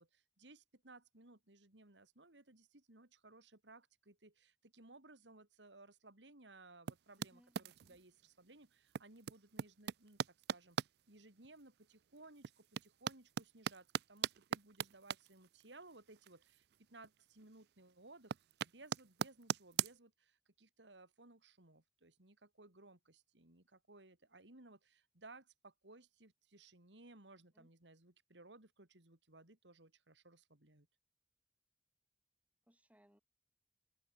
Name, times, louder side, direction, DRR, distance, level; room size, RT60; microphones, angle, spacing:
voice 1, 0.0-10.2 10.5-10.8 11.1-18.4 18.7-30.9, right 2 dB, 90° right, 3.7 m, -61 dB
sound 1, 6.9-8.0 8.9-10.9 11.4-11.5 12.2-16.8 17.0-17.6 17.9-19.9, right 8 dB, 65° right, 0.4 m, -40 dB
voice 2, 7.2-8.0 27.5-27.7 32.6-33.2, equal, 10° right, 6.4 m, -70 dB
head